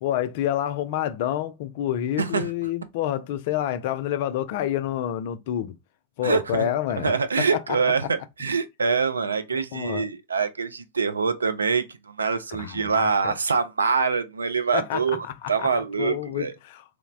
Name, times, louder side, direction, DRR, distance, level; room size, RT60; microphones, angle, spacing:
voice 1, 0.0-5.7 6.2-7.1 7.4-7.8 9.5-10.1 12.5-13.4 14.7-15.7 16.0-16.8, left 11 dB, 50° left, 0.3 m, -28 dB
voice 2, 2.2-2.5 6.2-6.7 7.0-8.0 8.4-11.8 12.2-16.5, right 5 dB, 75° right, 0.3 m, -25 dB
3.0 x 2.0 x 2.4 m
figure-of-eight pair, 90°, 0 cm